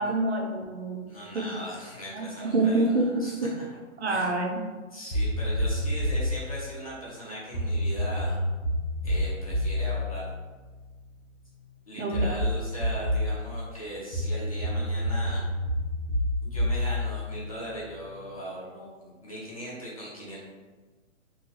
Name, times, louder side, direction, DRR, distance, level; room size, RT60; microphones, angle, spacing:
voice 1, 0.0-1.0 1.3-1.4 2.1-3.5 4.0-4.6 12.0-12.3, right 2 dB, 55° right, 2 dB, 0.5 m, -26 dB
voice 2, 1.1-3.5 4.0-4.3 4.9-8.4 9.0-10.3 11.9-15.4 16.4-20.4, equal, 25° left, -7 dB, 0.6 m, -39 dB
Fried Dubplin (Bass), 5.1-6.4 7.5-11.2 12.1-13.4 14.1-18.1, left 1 dB, 85° left, 1.1 m, -28 dB
3.8 x 2.2 x 2.8 m, 1.3 s
hypercardioid pair, 175°, 40 cm